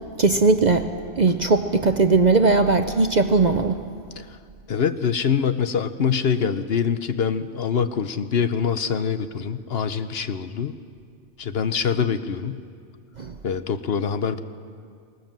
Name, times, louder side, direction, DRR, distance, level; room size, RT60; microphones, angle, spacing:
voice 1, 0.2-0.9 1.2-3.8 13.2-13.3, right 3 dB, 45° right, 8 dB, 0.6 m, -19 dB
voice 2, 4.7-10.8 11.4-12.6 13.4-14.4, left 7 dB, 55° left, 11 dB, 0.9 m, -24 dB
19.0 x 19.0 x 7.5 m, 2.2 s
omnidirectional pair, 1.3 m